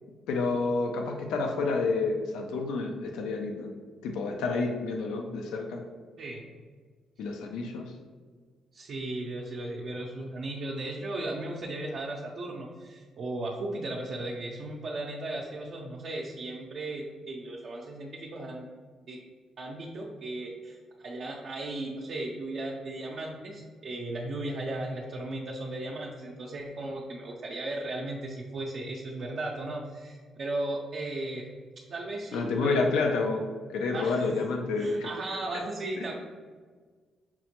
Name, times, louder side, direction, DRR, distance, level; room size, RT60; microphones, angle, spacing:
voice 1, 0.3-3.7 4.0-5.8 7.2-7.9 32.3-33.4 33.7-35.1 35.5-35.7, left 3 dB, 90° left, 3 dB, 0.4 m, -29 dB
voice 2, 8.7-18.7 19.1-19.2 19.6-31.5 31.9-32.8 33.9-34.4 34.8-36.1, right 2 dB, 60° right, -3 dB, 0.5 m, -36 dB
5.7 x 2.1 x 2.9 m, 1.5 s
cardioid pair, 90°, 0 cm